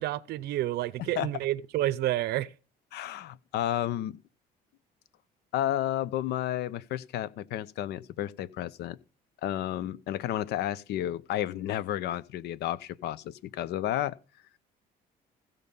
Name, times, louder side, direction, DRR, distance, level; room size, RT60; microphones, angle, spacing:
voice 1, 0.0-2.5, right 14 dB, 75° right, 0.6 m, -29 dB
voice 2, 2.9-4.2 5.5-9.0 9.4-14.2, left 12 dB, 75° left, 0.8 m, -32 dB
16.0 x 5.5 x 5.5 m
cardioid pair, 110°, 17 cm